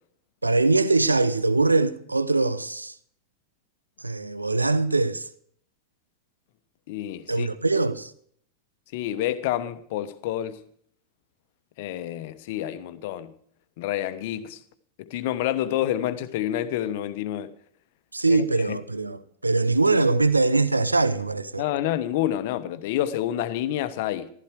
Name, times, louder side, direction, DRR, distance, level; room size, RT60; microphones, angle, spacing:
voice 1, 0.4-2.9 4.0-5.3 7.3-8.1 18.1-21.6, right 3 dB, 80° right, 0.7 m, -22 dB
voice 2, 6.9-7.5 8.9-10.6 11.8-13.3 13.8-14.6 15.0-17.5 18.3-18.8 21.6-24.3, left 12 dB, 50° left, 1.1 m, -28 dB
15.0 x 13.5 x 4.8 m
figure-of-eight pair, 90°, 0 cm